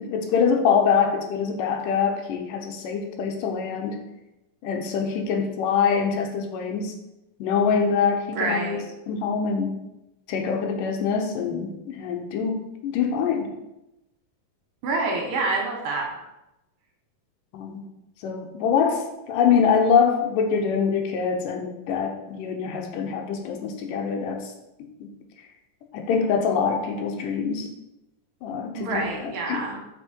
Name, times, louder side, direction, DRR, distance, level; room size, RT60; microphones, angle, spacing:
voice 1, 0.0-4.0 4.6-6.9 7.4-9.7 10.3-13.5 17.5-17.8 18.2-24.5 25.0-25.1 25.9-27.7 28.4-29.7, left 6 dB, 75° left, 3 dB, 2.4 m, -24 dB
voice 2, 8.3-8.8 14.8-16.0 28.7-29.8, right 3 dB, 70° right, -1 dB, 3.2 m, -27 dB
7.8 x 5.4 x 4.5 m, 0.92 s
omnidirectional pair, 4.0 m